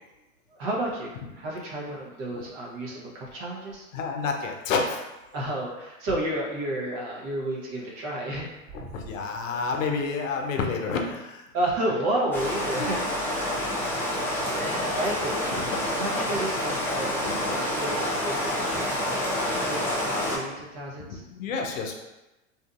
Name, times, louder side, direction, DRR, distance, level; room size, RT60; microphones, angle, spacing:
voice 1, 0.6-3.9 5.3-8.5 8.8-9.0 11.5-13.3 14.3-19.0 19.5-21.2, right 1 dB, 45° right, -3 dB, 0.9 m, -31 dB
voice 2, 3.9-5.0 8.7-11.4 12.8-12.9 15.5-15.8 17.2-17.6 21.1-21.9, left 4 dB, 70° left, 3 dB, 0.6 m, -30 dB
Rain, 12.3-20.4, left 1 dB, 5° left, 0.6 m, -28 dB
2.7 x 2.5 x 2.4 m, 1.0 s
hypercardioid pair, 95°, 41 cm